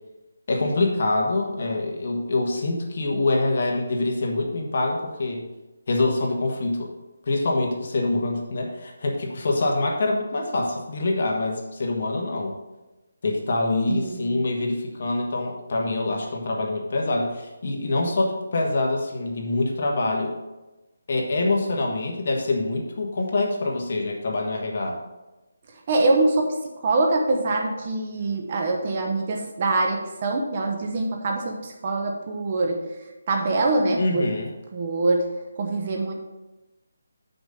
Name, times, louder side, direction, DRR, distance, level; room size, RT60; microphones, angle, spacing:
voice 1, 0.5-5.5 5.9-6.9 7.3-12.6 13.2-20.3 21.1-25.0 34.0-34.5, left 2 dB, 45° left, 0 dB, 1.5 m, -25 dB
voice 2, 13.9-14.4 25.9-32.9 33.3-34.3 34.7-35.3 35.6-36.1, right 2 dB, 30° right, 2 dB, 0.9 m, -24 dB
6.1 x 5.3 x 6.6 m, 1.1 s
hypercardioid pair, 175°, 0 cm